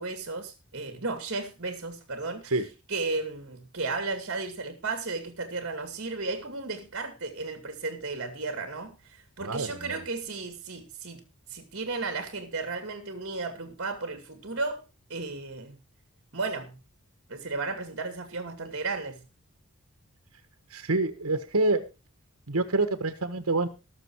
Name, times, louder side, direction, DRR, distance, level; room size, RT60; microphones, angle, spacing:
voice 1, 0.0-2.5 2.9-11.2 11.5-14.8 15.1-15.8 16.3-16.8 17.3-19.2, right 3 dB, 55° right, 2.3 m, -34 dB
voice 2, 9.4-10.0 20.7-21.9 22.5-23.7, right 2 dB, 80° right, 1.5 m, -27 dB
19.0 x 6.7 x 4.7 m
head